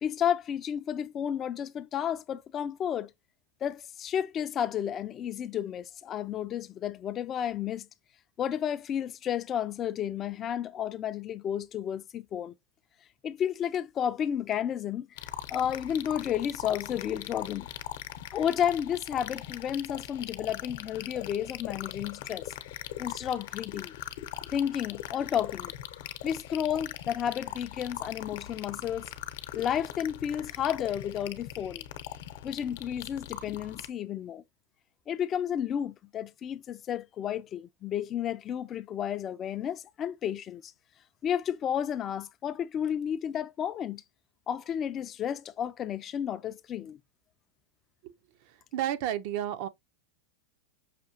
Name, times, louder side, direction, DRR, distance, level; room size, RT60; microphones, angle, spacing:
voice 1, 0.0-3.1 3.6-7.9 8.4-12.5 13.2-15.1 15.5-17.7 18.3-22.5 23.0-23.9 24.5-25.7 26.2-29.1 29.5-31.9 32.4-34.4 35.1-40.7 41.2-44.0 44.5-47.0, left 9 dB, 30° left, 0.3 m, -32 dB
sound 1, 15.2-33.9, left 12 dB, 65° left, 0.8 m, -41 dB
voice 2, 48.7-49.7, right 11 dB, 55° right, 0.5 m, -31 dB
5.8 x 2.7 x 2.7 m
supercardioid pair, 130°, 0 cm